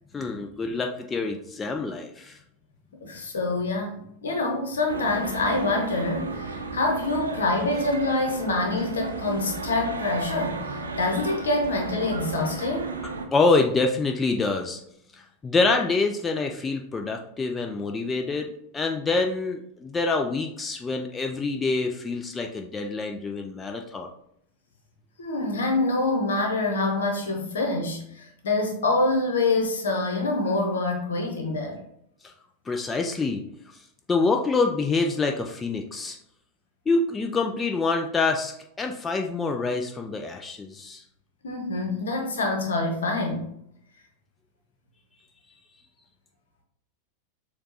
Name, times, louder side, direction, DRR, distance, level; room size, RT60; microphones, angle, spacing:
voice 1, 0.1-2.4 13.3-14.8 15.1-24.1 32.2-32.3 32.7-33.4 33.7-33.8 34.1-36.2 36.9-41.0, left 3 dB, 15° left, 3 dB, 0.4 m, -26 dB
voice 2, 3.0-12.9 25.2-31.8 41.4-43.5, left 2 dB, 65° left, 2 dB, 1.0 m, -26 dB
sound 1, 4.9-13.3, right 3 dB, 75° right, 0.6 m, -34 dB
6.6 x 2.4 x 2.7 m, 0.74 s
figure-of-eight pair, 90°, 0 cm